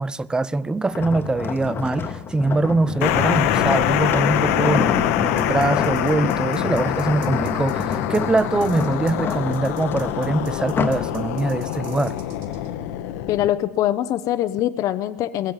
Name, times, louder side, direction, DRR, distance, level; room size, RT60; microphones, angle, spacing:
voice 1, 0.0-12.2, right 3 dB, 10° right, 0.5 m, -23 dB
sound 1, 0.9-11.1 11.6-11.8, left 6 dB, 30° left, 1.0 m, -28 dB
sound 2, 3.0-13.5, left 12 dB, 70° left, 1.0 m, -25 dB
sound 3, 5.4-12.7, right 10 dB, 65° right, 2.7 m, -47 dB
voice 2, 13.3-15.5, left 13 dB, 45° left, 0.6 m, -23 dB
21.0 x 7.5 x 8.9 m
hypercardioid pair, 105°, 8 cm